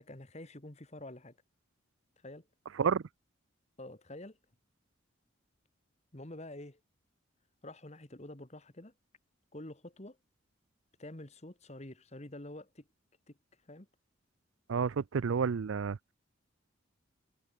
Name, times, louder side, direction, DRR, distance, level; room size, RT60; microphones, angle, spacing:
voice 1, 0.0-1.4 2.2-2.5 3.8-4.4 6.1-6.8 7.6-8.9 9.5-10.2 11.0-12.9 13.3-13.4 13.7-13.9, left 1 dB, 35° left, 1.8 m, -47 dB
voice 2, 14.7-16.1, right 6 dB, 80° right, 0.4 m, -30 dB
head